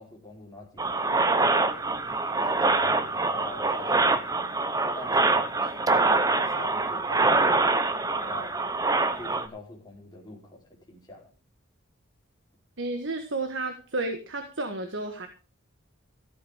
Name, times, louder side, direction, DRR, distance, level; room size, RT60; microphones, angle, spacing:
voice 1, 0.0-1.7 2.4-4.5 4.9-8.5 9.2-11.3, left 2 dB, 20° left, -2 dB, 4.5 m, -45 dB
sound 1, 0.8-9.5, right 3 dB, 15° right, 0.8 m, -24 dB
voice 2, 12.8-15.3, right 2 dB, 65° right, 6 dB, 1.6 m, -32 dB
15.0 x 8.3 x 5.0 m, 0.32 s
head